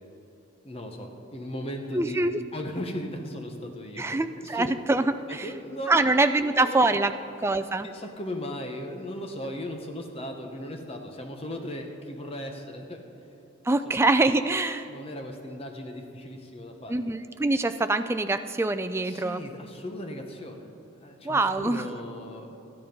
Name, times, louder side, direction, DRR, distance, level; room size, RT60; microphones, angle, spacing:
voice 1, 0.6-4.7 5.3-6.1 6.4-7.1 7.8-13.1 13.8-14.1 14.9-17.0 19.0-20.7 21.0-22.5, equal, 30° left, 3 dB, 1.0 m, -37 dB
voice 2, 1.9-2.4 4.0-5.5 5.9-7.1 7.4-7.9 13.6-14.9 16.9-19.4 21.2-21.9, right 2 dB, 10° right, 9 dB, 0.3 m, -24 dB
13.0 x 10.0 x 5.3 m, 2.9 s
head